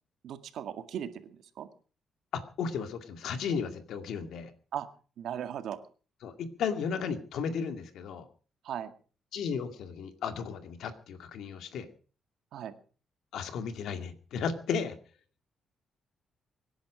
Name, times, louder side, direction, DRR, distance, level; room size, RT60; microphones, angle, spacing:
voice 1, 0.2-1.7 4.7-4.9 5.2-5.8 8.6-8.9 12.5-12.7, right 9 dB, 80° right, 8 dB, 1.9 m, -37 dB
voice 2, 2.3-4.5 6.2-8.3 9.3-11.9 13.3-15.0, left 6 dB, 80° left, 8 dB, 2.2 m, -34 dB
24.5 x 10.5 x 5.1 m, 0.39 s
cardioid pair, 110°, 0 cm